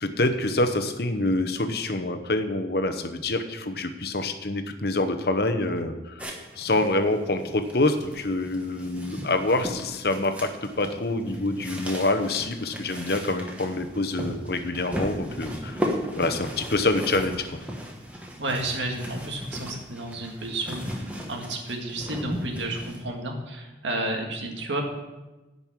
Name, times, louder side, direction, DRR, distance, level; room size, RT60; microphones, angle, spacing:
voice 1, 0.0-6.2 6.6-15.8 16.2-17.6, left 2 dB, 55° left, 7 dB, 0.9 m, -26 dB
sound 1, 6.2-23.0, equal, 5° right, 1.2 m, -36 dB
voice 2, 18.4-24.8, right 2 dB, 85° right, 2 dB, 1.9 m, -31 dB
10.5 x 5.4 x 7.4 m, 1.1 s
head